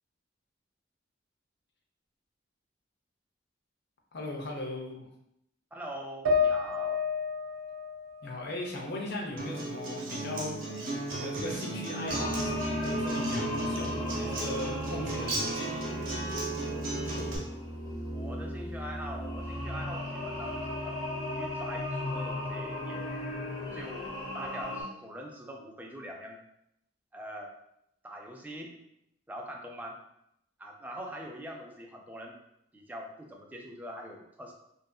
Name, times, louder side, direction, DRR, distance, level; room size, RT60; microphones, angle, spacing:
voice 1, 4.1-5.1 8.2-10.6 10.8-15.8, left 1 dB, 60° left, 0 dB, 0.6 m, -38 dB
voice 2, 5.7-7.0 18.1-21.0 21.3-23.4 23.7-24.1 24.3-26.4 27.1-27.5 28.0-28.7 29.3-30.0 30.6-32.4 32.7-34.5, equal, 10° right, 0 dB, 0.3 m, -43 dB
sound 1, 6.3-9.7 10.1-11.1, left 5 dB, 90° right, 0.4 m, -32 dB
Acoustic guitar, 9.4-17.4, right 2 dB, 50° right, 0.8 m, -36 dB
sound 2, 12.1-24.8, left 1 dB, 25° left, 0.8 m, -35 dB
2.7 x 2.5 x 2.2 m, 0.78 s
head